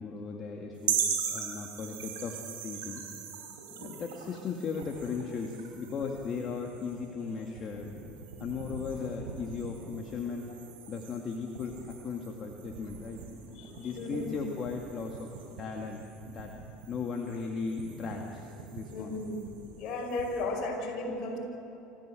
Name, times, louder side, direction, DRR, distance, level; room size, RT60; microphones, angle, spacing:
voice 1, 0.0-2.4 2.6-3.0 3.7-7.9 8.4-10.5 10.9-13.2 13.7-15.3 15.6-16.5 16.9-19.2, left 5 dB, 40° left, 1 dB, 2.1 m, -37 dB
sound 1, 0.8-20.4, right 7 dB, 85° right, 4.0 m, -40 dB
voice 2, 13.8-14.3 18.9-19.4 19.8-21.4, left 2 dB, 60° left, 1 dB, 5.6 m, -34 dB
26.5 x 15.0 x 7.8 m, 2.9 s
hypercardioid pair, 85°, 0 cm